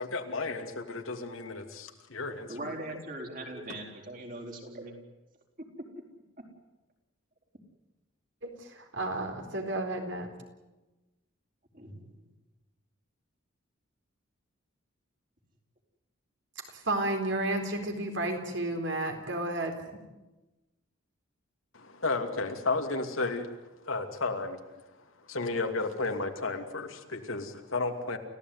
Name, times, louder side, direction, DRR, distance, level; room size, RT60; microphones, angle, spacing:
voice 1, 0.0-2.5 21.7-23.5 23.8-24.6 25.3-28.2, left 3 dB, 80° left, 5 dB, 2.7 m, -33 dB
voice 2, 2.5-5.0 6.4-6.5 11.7-12.3, right 1 dB, 40° right, 2 dB, 4.6 m, -41 dB
voice 3, 8.4-10.3 16.6-19.8, right 2 dB, 65° right, 4 dB, 4.1 m, -32 dB
29.5 x 15.5 x 9.5 m, 1.1 s
head